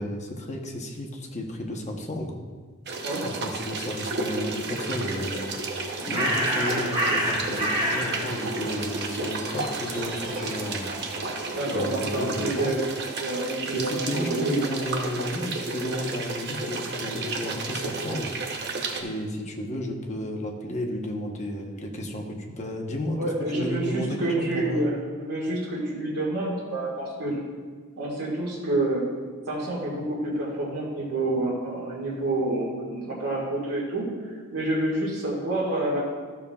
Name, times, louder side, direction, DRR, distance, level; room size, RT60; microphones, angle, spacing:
voice 1, 0.0-2.4 3.2-5.6 6.1-10.9 11.7-12.7 13.7-18.3 19.0-23.2 23.5-24.9, left 1 dB, 30° left, 1 dB, 1.0 m, -32 dB
sound 1, 2.9-19.0, right 3 dB, 50° right, 0.8 m, -32 dB
Bird, 5.6-11.7, equal, 20° right, 1.5 m, -30 dB
voice 2, 11.5-12.8 13.2-14.6 17.5-17.6 23.1-27.4 28.0-29.1 29.5-36.0, right 2 dB, 85° right, -6 dB, 1.9 m, -28 dB
13.5 x 7.0 x 2.4 m, 1.5 s
head